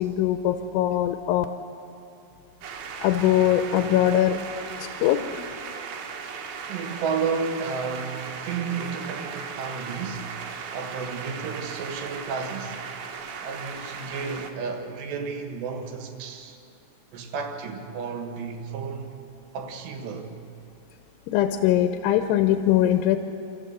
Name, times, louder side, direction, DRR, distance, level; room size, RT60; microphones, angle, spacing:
voice 1, 0.0-1.5 3.0-4.4 4.8-5.4 21.3-23.2, left 12 dB, 80° left, 2.8 m, -22 dB
sound 1, 2.6-14.5, right 6 dB, 70° right, 3.2 m, -37 dB
voice 2, 6.7-10.3 10.7-12.8 13.4-16.6 17.1-19.2 19.5-20.3, right 5 dB, 85° right, 3.9 m, -32 dB
29.0 x 14.0 x 8.0 m
omnidirectional pair, 4.8 m